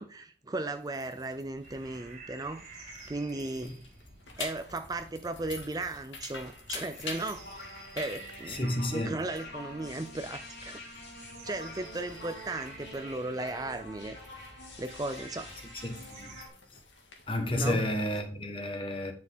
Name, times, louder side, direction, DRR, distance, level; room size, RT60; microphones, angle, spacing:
voice 1, 0.0-2.6 3.1-3.7 4.4-8.6 8.9-10.8 11.4-15.5 17.5-17.9, right 2 dB, 20° right, 0.5 m, -36 dB
sound 1, 0.6-18.2, left 4 dB, 90° left, 2.0 m, -48 dB
sound 2, 1.6-16.5, right 3 dB, 40° right, 2.4 m, -52 dB
sound 3, 7.0-16.5, left 1 dB, 70° left, 2.8 m, -46 dB
voice 2, 8.5-9.2 15.8-16.3 17.3-19.1, left 1 dB, 30° left, 1.2 m, -31 dB
9.7 x 6.1 x 3.6 m
head